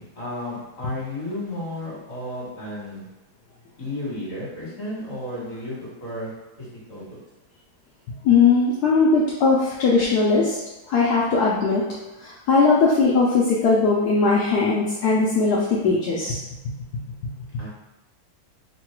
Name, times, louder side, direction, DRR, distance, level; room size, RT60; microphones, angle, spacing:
voice 1, 0.0-3.1 3.8-6.3 6.6-7.2 17.6-17.7, left 1 dB, 40° left, -7 dB, 1.8 m, -33 dB
voice 2, 8.2-10.6 10.9-11.9 12.2-16.4, left 4 dB, 75° left, -4 dB, 0.9 m, -19 dB
3.8 x 2.2 x 4.4 m, 1.1 s
omnidirectional pair, 2.3 m